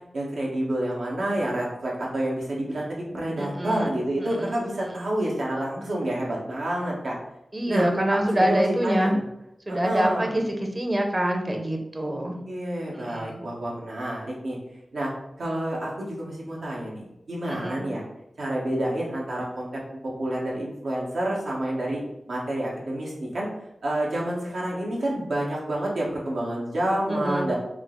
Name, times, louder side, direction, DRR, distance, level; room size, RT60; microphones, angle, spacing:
voice 1, 0.1-7.2 7.7-9.2 9.7-10.3 12.1-14.6 14.9-15.1 15.4-18.0 18.4-22.0 22.3-23.5 23.8-27.5, right 1 dB, 85° right, -4 dB, 1.2 m, -29 dB
voice 2, 3.4-3.9 4.2-4.5 4.9-5.0 7.5-9.2 9.7-12.4 12.9-13.5 17.5-17.9 27.1-27.5, right 1 dB, 25° right, 3 dB, 0.6 m, -26 dB
4.9 x 2.0 x 3.7 m, 0.84 s
wide cardioid pair, 105°, 0 cm